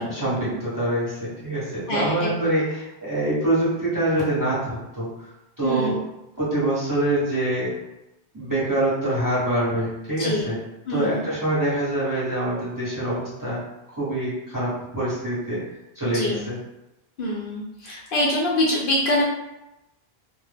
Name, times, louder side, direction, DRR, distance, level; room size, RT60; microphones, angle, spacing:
voice 1, 0.0-5.1 5.6-6.0 6.4-7.7 8.3-10.6 10.9-13.6 14.0-15.6 15.9-16.6, right 1 dB, 20° right, -10 dB, 0.9 m, -25 dB
voice 2, 1.9-2.3 5.6-6.0 10.2-10.5 10.9-11.2 16.1-16.4 17.2-19.2, left 1 dB, 65° left, -4 dB, 0.7 m, -24 dB
2.2 x 2.0 x 3.2 m, 0.93 s
omnidirectional pair, 1.0 m